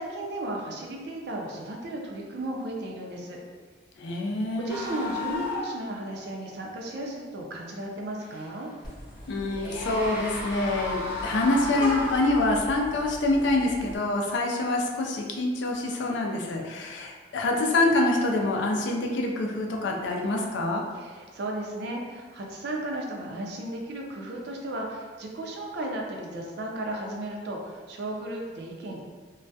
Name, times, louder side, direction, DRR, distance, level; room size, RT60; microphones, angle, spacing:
voice 1, 0.0-3.4 4.6-8.7 20.9-29.0, right 1 dB, 60° right, 0 dB, 0.4 m, -35 dB
voice 2, 4.0-4.8 9.3-20.8, left 2 dB, 75° left, 0 dB, 0.4 m, -26 dB
sound 1, 4.7-5.9 6.1-6.2 8.2-8.6 9.4-12.8, left 3 dB, 10° right, 0.5 m, -34 dB
Vehicle horn car horn honking, 8.8-14.0, equal, 25° left, 0.7 m, -40 dB
2.2 x 2.1 x 2.6 m, 1.5 s
head